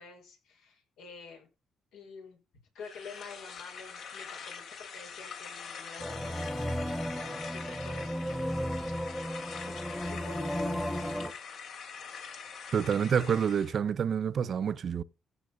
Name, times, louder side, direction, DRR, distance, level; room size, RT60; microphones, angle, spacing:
voice 1, 0.0-1.5 1.9-2.4 2.7-9.2 9.6-11.1, left 5 dB, 90° left, 5.2 m, -49 dB
sound 1, 2.8-13.8, left 6 dB, 70° left, 2.8 m, -44 dB
sound 2, 6.0-11.3, equal, 5° left, 1.0 m, -34 dB
voice 2, 12.7-15.0, right 7 dB, 55° right, 0.7 m, -28 dB
15.5 x 6.0 x 5.5 m
cardioid pair, 90°, 0 cm